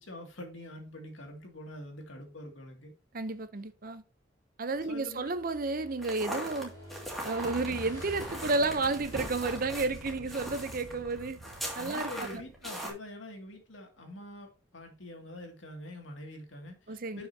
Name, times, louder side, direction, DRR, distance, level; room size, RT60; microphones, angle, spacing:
voice 1, 0.0-2.9 4.9-5.3 11.8-17.3, left 1 dB, 75° left, 2.3 m, -45 dB
voice 2, 3.1-4.0 4.6-6.7 7.2-11.4 11.7-12.4 16.9-17.2, right 3 dB, 45° right, 0.7 m, -32 dB
Motorcycle / Engine, 4.8-11.8, equal, 20° left, 5.1 m, -50 dB
sound 1, 6.0-12.9, equal, ahead, 2.3 m, -40 dB
Explosion, 7.3-12.8, right 2 dB, 75° right, 0.9 m, -48 dB
11.5 x 5.8 x 2.8 m
head